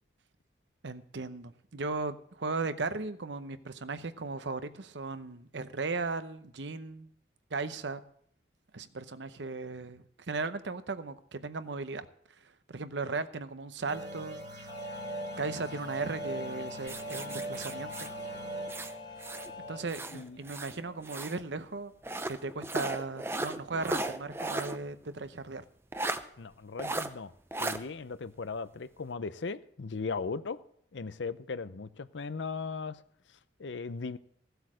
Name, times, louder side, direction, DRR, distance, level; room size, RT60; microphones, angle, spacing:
voice 1, 0.8-7.1 7.5-8.0 8.7-14.4 15.4-18.1 19.7-21.9 22.3-25.6, right 3 dB, 70° right, 0.8 m, -37 dB
sound 1, 13.9-21.1, right 2 dB, 40° right, 2.0 m, -42 dB
sound 2, 14.7-19.8, left 6 dB, 25° left, 0.7 m, -46 dB
sound 3, 16.9-19.5 19.9-21.4 22.0-24.8 25.1-25.2 25.9-26.2 26.8-27.1 27.5-27.8, right 2 dB, 15° right, 0.6 m, -36 dB
voice 2, 26.4-27.3 27.6-30.6 30.9-33.0 33.3-34.2, left 4 dB, 75° left, 0.6 m, -38 dB
15.5 x 8.0 x 6.3 m
head